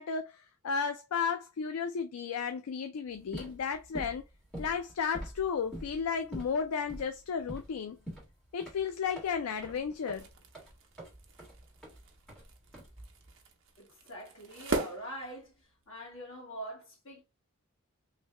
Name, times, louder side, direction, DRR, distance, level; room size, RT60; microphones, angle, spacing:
voice 1, 0.0-4.2 4.6-8.0 8.5-10.3, left 6 dB, 80° left, 0.4 m, -33 dB
sound 1, 3.1-13.3, equal, 5° left, 1.6 m, -46 dB
sound 2, 9.9-15.9, right 3 dB, 55° right, 0.7 m, -41 dB
voice 2, 13.8-15.5 15.9-17.2, right 1 dB, 65° left, 1.8 m, -44 dB
3.3 x 2.7 x 3.2 m
head